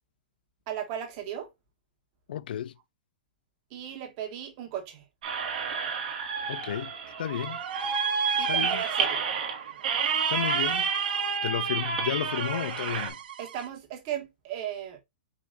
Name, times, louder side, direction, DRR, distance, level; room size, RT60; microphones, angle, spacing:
voice 1, 0.7-1.5 3.7-5.0 8.4-9.2 13.4-15.0, right 10 dB, 40° right, 1.4 m, -36 dB
voice 2, 2.3-2.7 6.5-6.9 7.2-7.6 8.4-8.8 10.3-10.9 11.4-13.2, left 10 dB, 75° left, 0.4 m, -32 dB
sound 1, 5.2-13.1, right 6 dB, 60° right, 1.5 m, -29 dB
sound 2, 6.6-11.4 11.7-13.7, right 10 dB, 75° right, 0.7 m, -44 dB
5.0 x 2.6 x 4.0 m
hypercardioid pair, 145°, 5 cm